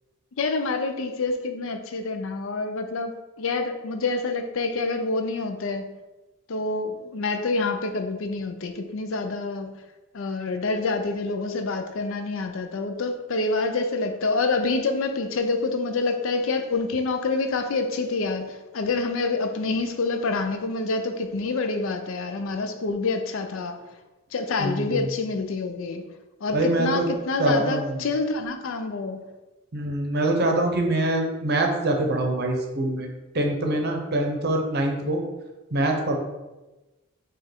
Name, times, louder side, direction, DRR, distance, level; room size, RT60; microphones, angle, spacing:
voice 1, 0.4-5.9 6.5-9.8 10.1-23.8 24.3-26.1 26.4-29.3, left 3 dB, 60° left, 6 dB, 0.5 m, -27 dB
voice 2, 26.5-27.1 27.4-28.0 29.7-33.1 33.3-35.2 35.7-36.2, right 1 dB, 45° right, 3 dB, 0.7 m, -24 dB
5.1 x 2.4 x 4.4 m, 1.1 s
head